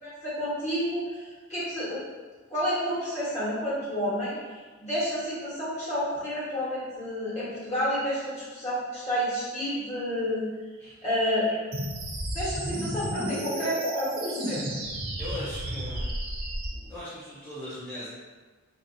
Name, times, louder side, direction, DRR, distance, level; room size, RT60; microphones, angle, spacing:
voice 1, 0.0-2.0 2.5-10.4 11.0-11.6 12.3-14.6, equal, 30° left, -10 dB, 1.5 m, -30 dB
sound 1, 11.7-16.7, right 1 dB, 45° right, 0.7 m, -32 dB
voice 2, 15.2-16.2 16.7-18.1, left 1 dB, 10° left, -11 dB, 0.6 m, -39 dB
4.0 x 2.8 x 2.6 m, 1.4 s
head